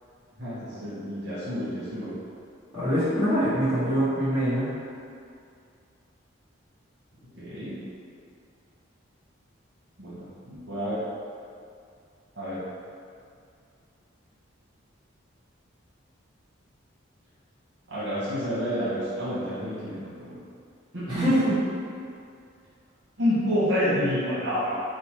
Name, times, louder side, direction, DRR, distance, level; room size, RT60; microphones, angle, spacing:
voice 1, 0.4-2.1 7.3-7.7 10.0-11.0 12.3-12.6 17.9-20.4 20.9-21.4 23.2-24.8, equal, 60° right, -11 dB, 1.2 m, -29 dB
voice 2, 2.7-4.7 21.1-21.6, equal, 20° right, -14 dB, 1.4 m, -24 dB
4.9 x 2.1 x 3.0 m, 2.4 s
head